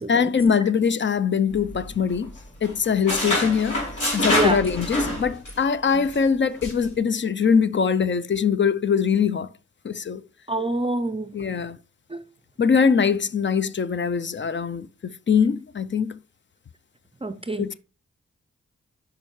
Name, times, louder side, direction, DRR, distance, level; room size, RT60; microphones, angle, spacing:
voice 1, 0.1-2.3 2.6-3.8 4.1-9.5 9.8-10.2 11.3-11.8 12.6-16.2 17.6-17.7, left 6 dB, 40° left, 0.4 m, -22 dB
sound 1, 1.5-2.4 2.6-5.6 5.9-6.2 6.6-6.9, left 1 dB, 90° left, 3.3 m, -26 dB
voice 2, 10.5-11.3 12.1-12.2 17.2-17.7, right 2 dB, 20° right, 0.5 m, -25 dB
8.6 x 5.7 x 3.1 m
cardioid pair, 45°, 29 cm